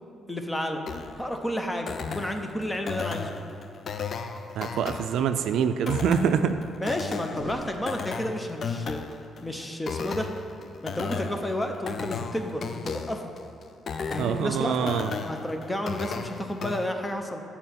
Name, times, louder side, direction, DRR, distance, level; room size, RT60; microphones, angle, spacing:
voice 1, 0.3-0.8 1.2-3.3 6.8-9.0 9.4-10.3 10.8-13.2 14.1-14.9 15.2-17.4, left 1 dB, 15° left, 4 dB, 0.7 m, -31 dB
sound 1, 0.9-16.9, left 5 dB, 50° left, 0.4 m, -35 dB
voice 2, 4.6-6.5 14.2-15.1, right 7 dB, 80° right, 9 dB, 0.3 m, -25 dB
sound 2, 7.3-8.5, equal, 30° left, 1.2 m, -42 dB
7.6 x 4.2 x 5.8 m, 2.7 s
cardioid pair, 90°, 0 cm